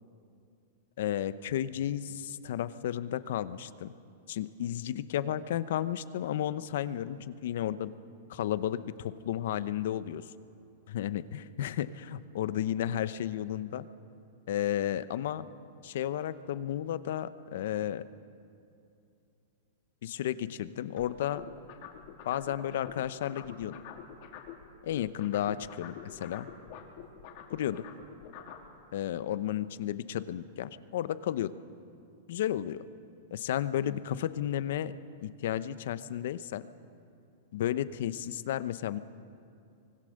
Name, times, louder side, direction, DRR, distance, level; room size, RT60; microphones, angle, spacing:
voice 1, 1.0-3.9 4.3-7.9 8.3-10.2 10.9-13.9 14.5-15.5 15.8-18.0 20.0-21.5 22.3-23.8 24.8-26.5 27.5-27.8 28.9-31.5 32.3-32.8 33.3-34.9 35.2-36.6 37.5-39.0, left 11 dB, 65° left, 14 dB, 0.8 m, -33 dB
sound 1, 21.0-24.6 24.9-28.7, left 8 dB, 50° left, 2.7 m, -46 dB
24.5 x 19.5 x 6.6 m, 2.6 s
supercardioid pair, 155°, 0 cm